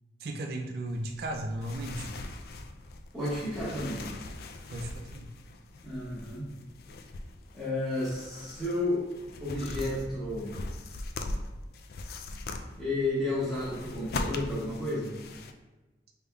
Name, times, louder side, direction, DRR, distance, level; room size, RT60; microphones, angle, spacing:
voice 1, 0.2-2.1 4.7-5.3, right 1 dB, 60° right, 3 dB, 0.4 m, -35 dB
sound 1, 0.9-15.5, left 2 dB, 60° left, 0.3 m, -41 dB
voice 2, 3.1-4.0 5.8-6.5 7.5-9.0 9.4-10.6 12.8-15.1, left 1 dB, ahead, -11 dB, 1.2 m, -32 dB
5.2 x 3.4 x 2.3 m, 1.1 s
head